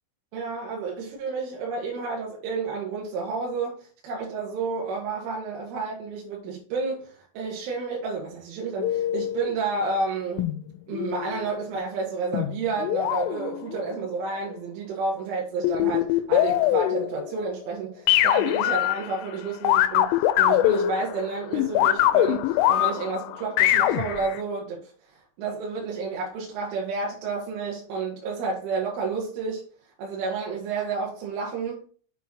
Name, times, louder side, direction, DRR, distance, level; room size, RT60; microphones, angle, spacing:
voice 1, 0.3-10.5 10.9-20.1 20.4-24.8 25.4-29.6 30.0-31.8, right 4 dB, 80° right, 4.0 m, -30 dB
sound 1, 8.8-9.5 10.4-11.5 12.3-14.4 15.6-17.5 18.1-19.3 19.6-24.4, left 13 dB, 85° left, 3.2 m, -23 dB
8.1 x 6.0 x 2.9 m
omnidirectional pair, 5.6 m